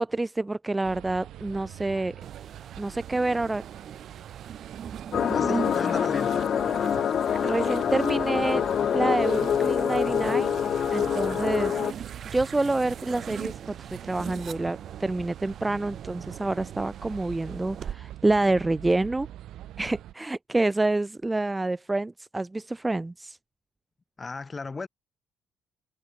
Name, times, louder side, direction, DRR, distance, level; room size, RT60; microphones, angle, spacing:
voice 1, 0.0-2.2 2.8-3.6 7.4-8.6 8.9-10.6 10.9-11.7 12.3-19.3 19.8-23.4, right 2 dB, 15° right, 0.3 m, -27 dB
sound 1, 0.8-20.1, right 13 dB, 80° right, 3.4 m, -44 dB
sound 2, 2.2-17.9, right 8 dB, 60° right, 2.7 m, -40 dB
sound 3, 5.1-11.9, left 8 dB, 60° left, 1.0 m, -25 dB
voice 2, 5.3-6.4 24.2-24.9, left 4 dB, 30° left, 3.0 m, -35 dB
cardioid pair, 90°, 0 cm